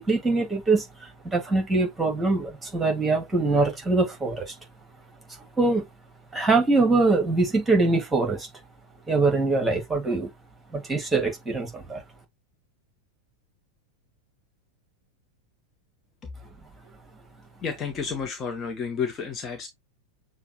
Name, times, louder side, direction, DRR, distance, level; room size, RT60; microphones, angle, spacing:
voice 1, 0.0-4.5 5.6-5.8 6.3-8.5 9.1-10.3 10.7-12.0, right 3 dB, 10° right, 2.1 m, -23 dB
voice 2, 17.6-19.7, left 6 dB, 25° left, 1.1 m, -31 dB
6.8 x 2.4 x 3.0 m
figure-of-eight pair, 90°, 0 cm